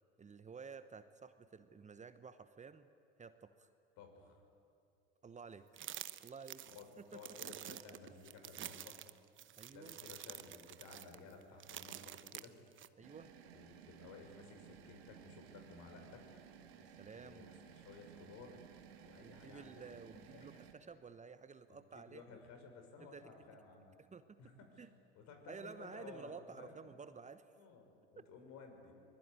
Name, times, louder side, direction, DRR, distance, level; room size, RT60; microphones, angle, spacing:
voice 1, 0.2-2.9 3.2-3.7 5.2-5.7 6.2-6.6 7.1-7.4 7.7-7.8 9.6-10.0 13.0-13.3 16.7-17.5 19.2-22.4 23.0-23.3 24.0-24.5 24.8-24.9 25.5-27.5, right 5 dB, 20° right, 11 dB, 1.1 m, -53 dB
voice 2, 4.0-4.4 6.7-9.0 9.7-12.6 13.5-16.2 17.2-18.7 19.0-19.8 20.1-20.6 21.7-24.0 24.4-24.8 25.2-26.8 27.6-28.9, left 4 dB, 55° left, 4 dB, 6.0 m, -56 dB
sound 1, 5.8-12.9, right 11 dB, 40° right, 1.0 m, -49 dB
sound 2, 13.0-20.7, right 8 dB, 75° right, 2.5 m, -58 dB
24.0 x 21.0 x 9.7 m, 2.4 s
hypercardioid pair, 80°, 31 cm